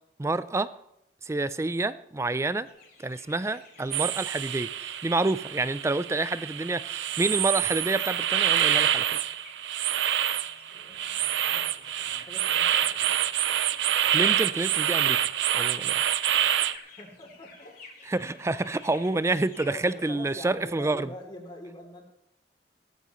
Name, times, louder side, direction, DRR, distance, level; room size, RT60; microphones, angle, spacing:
voice 1, 0.2-0.7 1.2-2.7 3.0-9.2 14.1-15.2 15.5-16.0 18.0-21.1, right 2 dB, 15° right, 15 dB, 0.4 m, -28 dB
sound 1, 2.7-20.1, left 3 dB, 55° left, 2.8 m, -53 dB
sound 2, 3.9-16.8, right 11 dB, 80° right, 0.5 m, -27 dB
voice 2, 10.7-13.4 16.6-17.7 18.2-18.5 19.5-22.0, left 1 dB, 25° left, 1 dB, 3.1 m, -45 dB
16.0 x 14.0 x 3.1 m, 0.81 s
head